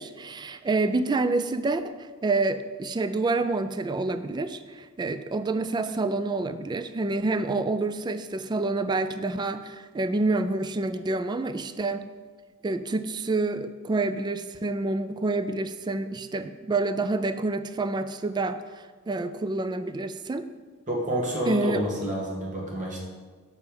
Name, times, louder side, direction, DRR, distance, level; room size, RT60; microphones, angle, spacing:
voice 1, 0.0-12.0 12.6-20.5 21.5-21.8, right 3 dB, 20° right, 11 dB, 0.3 m, -28 dB
voice 2, 20.9-23.0, right 1 dB, 35° right, -2 dB, 1.9 m, -29 dB
6.8 x 5.7 x 6.8 m, 1.4 s
head